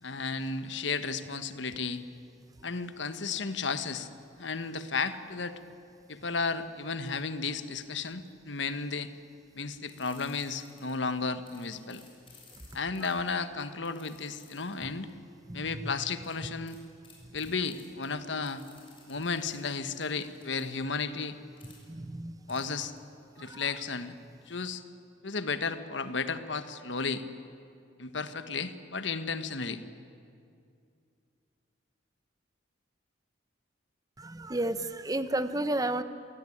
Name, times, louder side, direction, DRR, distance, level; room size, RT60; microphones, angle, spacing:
voice 1, 0.0-2.0 2.6-4.1 4.4-5.6 6.1-9.1 9.5-12.0 12.7-15.1 15.5-16.8 17.3-18.6 19.1-21.4 22.5-22.9 23.4-24.1 24.5-24.8 25.2-27.2 28.0-29.8, left 4 dB, 75° left, 11 dB, 1.3 m, -33 dB
sound 1, 9.9-11.1 11.5-15.1 16.2-16.4 16.7-16.8 17.0-18.1 18.5-20.6 21.6-21.8 22.5-22.7 23.0-23.1, left 5 dB, 30° left, 6.9 m, -57 dB
voice 2, 21.9-22.3 23.5-23.6 34.2-36.0, right 1 dB, 20° right, 11 dB, 0.9 m, -31 dB
27.5 x 18.0 x 9.9 m, 2.4 s
head